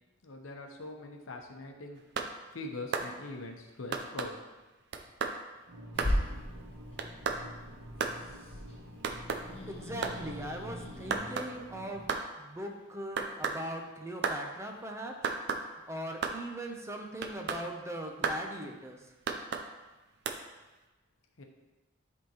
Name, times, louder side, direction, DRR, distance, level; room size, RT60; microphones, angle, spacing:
voice 1, 0.2-2.0 2.5-4.4 21.4-21.5, left 2 dB, 85° left, 3 dB, 0.8 m, -42 dB
sound 1, 2.0-2.3 2.9-3.1 3.9-4.3 4.9-5.4 6.0-6.2 7.0-7.4 8.0-8.2 9.0-9.4 10.0-10.2 11.1-11.5 12.1-12.3 13.2-13.6 14.2-14.4 15.2-15.6 16.2-16.4 17.2-17.6 18.2-18.4 19.3-19.7 20.3-20.4, right 5 dB, 60° right, 0.5 m, -33 dB
sound 2, 5.7-12.0, equal, 80° right, 0.9 m, -48 dB
Growling / Hiss, 5.9-11.2, equal, 30° left, 1.0 m, -38 dB
voice 2, 9.7-12.1 12.4-15.1 15.9-19.0, right 1 dB, 15° right, 2 dB, 0.6 m, -40 dB
10.5 x 3.6 x 2.9 m, 1.1 s
head